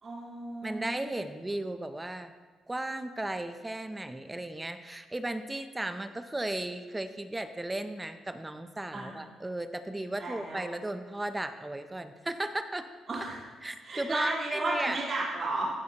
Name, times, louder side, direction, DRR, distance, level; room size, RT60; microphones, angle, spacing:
voice 1, 0.0-1.1 8.9-9.2 10.2-10.6 13.1-13.4 13.8-15.7, right 2 dB, 45° right, -7 dB, 3.8 m, -34 dB
voice 2, 0.6-2.3 2.7-12.9 13.6-15.0, right 1 dB, 15° right, 9 dB, 0.6 m, -35 dB
16.0 x 8.4 x 2.9 m, 1.4 s
cardioid pair, 90°, 0 cm